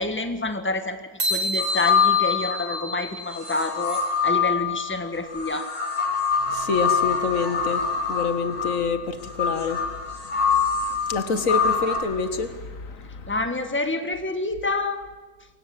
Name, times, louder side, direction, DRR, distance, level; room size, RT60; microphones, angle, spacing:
voice 1, 0.0-5.7 13.3-15.0, left 2 dB, 10° left, 1.5 m, -28 dB
sound 1, 1.2-3.8, equal, 25° right, 4.2 m, -29 dB
sound 2, 1.6-2.8 3.4-12.0, left 6 dB, 30° left, 4.8 m, -25 dB
voice 2, 6.5-10.0 10.5-10.6 10.9-13.3, left 5 dB, 55° left, 2.1 m, -27 dB
23.5 x 19.0 x 7.7 m
omnidirectional pair, 1.7 m